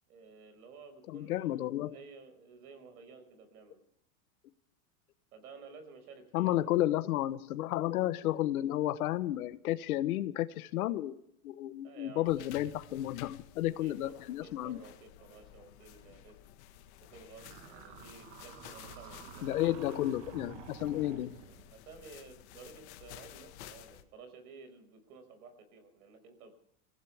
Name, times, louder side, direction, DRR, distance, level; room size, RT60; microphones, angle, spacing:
voice 1, 0.1-3.8 5.3-6.5 11.8-12.7 13.8-16.4 17.1-19.6 21.7-26.6, right 4 dB, 85° right, 8 dB, 5.8 m, -53 dB
voice 2, 1.1-1.9 6.3-11.1 11.4-14.8 19.4-21.3, left 14 dB, 80° left, 11 dB, 1.2 m, -32 dB
sound 1, 12.2-24.0, left 12 dB, 50° left, 1.6 m, -53 dB
sound 2, 17.4-21.7, right 7 dB, 35° right, 1.7 m, -50 dB
27.0 x 15.0 x 3.5 m, 0.70 s
supercardioid pair, 180°, 43 cm